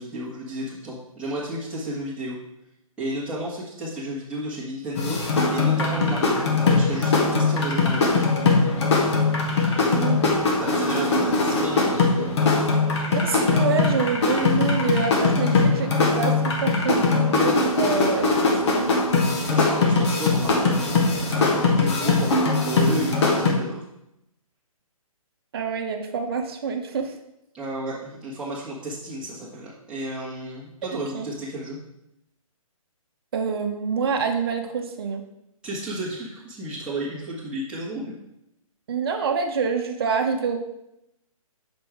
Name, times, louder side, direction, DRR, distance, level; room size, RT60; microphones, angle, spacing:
voice 1, 0.0-2.4 3.0-8.1 9.7-10.1 10.6-12.3 19.5-22.3 22.6-23.8 27.5-31.8 35.6-38.2, right 1 dB, 5° right, -9 dB, 1.4 m, -32 dB
sound 1, 4.9-23.5, left 3 dB, 50° left, 1.5 m, -21 dB
voice 2, 9.9-10.5 13.1-18.9 25.5-27.2 30.8-31.3 33.3-35.2 38.9-40.6, right 5 dB, 40° right, 4 dB, 1.0 m, -27 dB
6.0 x 5.2 x 4.7 m, 0.85 s
figure-of-eight pair, 140°, 19 cm